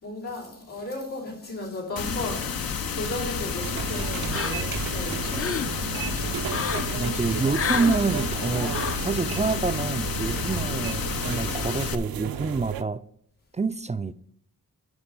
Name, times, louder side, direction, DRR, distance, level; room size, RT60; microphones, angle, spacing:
voice 1, 0.0-7.4, left 2 dB, 90° left, 3.5 m, -36 dB
sound 1, 2.0-12.0, left 6 dB, 70° left, 0.8 m, -30 dB
sound 2, 3.6-12.8, right 9 dB, 75° right, 0.5 m, -34 dB
sound 3, 4.3-4.8 5.2-5.7 6.5-6.9 7.5-8.0 8.7-9.1, left 6 dB, 40° left, 0.5 m, -29 dB
voice 2, 6.9-8.8 9.0-13.0 13.5-14.1, right 4 dB, 20° right, 0.4 m, -27 dB
11.0 x 4.7 x 5.1 m
cardioid pair, 50°, 36 cm